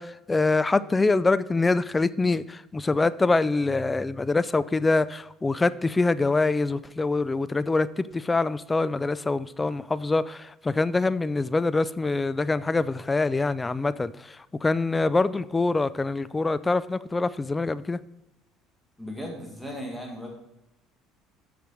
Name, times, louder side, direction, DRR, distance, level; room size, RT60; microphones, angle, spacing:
voice 1, 0.0-18.0, left 3 dB, 15° left, 0.4 m, -25 dB
voice 2, 19.0-20.3, equal, ahead, 1.9 m, -36 dB
6.8 x 6.1 x 4.9 m
supercardioid pair, 95°, 0 cm